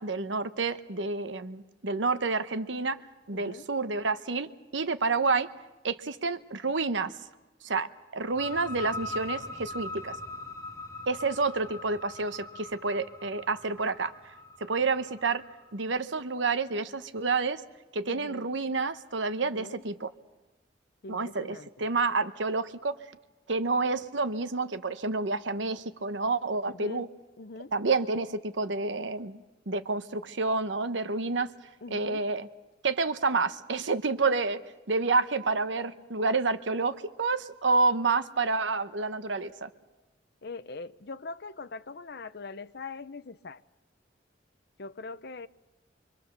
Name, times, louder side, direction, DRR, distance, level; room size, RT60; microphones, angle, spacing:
voice 1, 0.0-3.0 3.3-5.5 5.8-7.1 7.6-10.2 11.1-14.1 14.6-15.4 15.7-17.6 17.9-20.1 21.1-23.0 23.5-27.1 27.7-29.4 29.7-31.5 31.9-32.5 32.8-34.6 34.9-39.7, right 3 dB, 80° right, 1.0 m, -29 dB
voice 2, 3.3-3.7 18.0-18.5 19.4-19.8 21.0-21.9 26.6-27.1 27.4-27.7 31.8-32.2 40.4-43.6 44.8-45.5, left 3 dB, 60° left, 0.7 m, -42 dB
sound 1, 8.2-15.7, left 2 dB, 15° left, 1.5 m, -41 dB
25.0 x 25.0 x 6.8 m
head